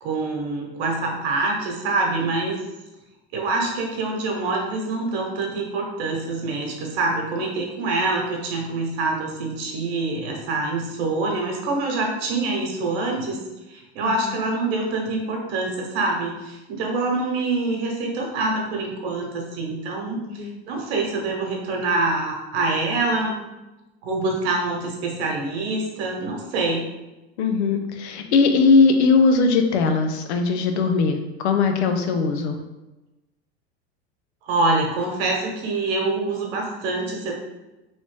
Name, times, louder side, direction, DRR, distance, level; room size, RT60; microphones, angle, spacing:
voice 1, 0.0-2.6 3.3-13.4 13.7-23.4 24.0-26.9 34.4-37.3, right 3 dB, 70° right, 0 dB, 1.2 m, -25 dB
voice 2, 14.0-14.4 20.1-20.6 27.4-32.6, left 4 dB, 80° left, 6 dB, 0.6 m, -20 dB
3.2 x 2.7 x 3.2 m, 1.0 s
supercardioid pair, 115°, 33 cm